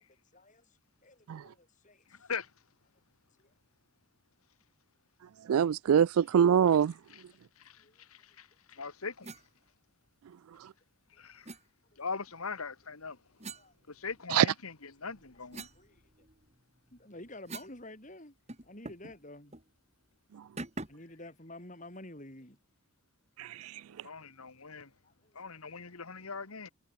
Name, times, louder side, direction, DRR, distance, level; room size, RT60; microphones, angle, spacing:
voice 1, 0.3-2.3 3.4-3.5 7.8-8.0 13.4-13.7 15.3-16.3 16.9-18.4 18.6-19.6 20.9-22.6 25.0-25.3, left 1 dB, 35° left, 5.5 m, -50 dB
voice 2, 5.5-6.9 14.3-14.5 23.4-23.8, right 8 dB, 85° right, 0.4 m, -24 dB
voice 3, 8.4-9.3 11.2-11.5 12.0-13.2 13.9-15.7 24.0-24.9 25.4-26.7, left 5 dB, 90° left, 2.0 m, -40 dB
sound 1, 9.2-9.5 11.4-11.6 13.4-14.4 14.9-17.8 18.1-18.2 18.5-19.2 19.5-19.7 20.6-21.1, right 2 dB, 30° right, 3.1 m, -46 dB
head